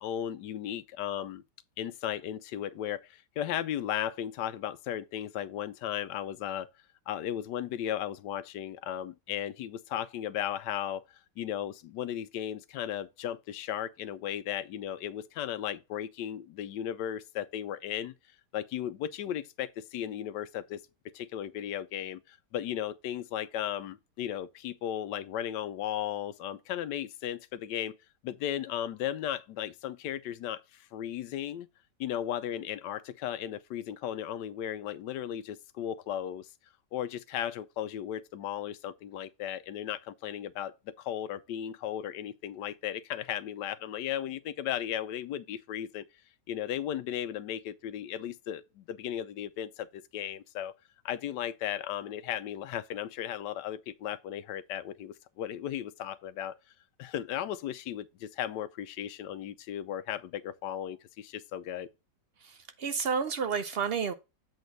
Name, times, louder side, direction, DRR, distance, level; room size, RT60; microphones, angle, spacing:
voice 1, 0.0-1.4 1.8-6.7 7.1-11.0 11.4-18.1 18.5-20.8 21.1-27.9 28.2-31.7 32.0-36.5 36.9-46.0 46.5-50.7 51.0-56.5 57.0-61.9, left 10 dB, 80° left, 1.2 m, -36 dB
voice 2, 62.4-64.1, right 6 dB, 80° right, 0.5 m, -31 dB
8.1 x 4.3 x 3.9 m
omnidirectional pair, 1.8 m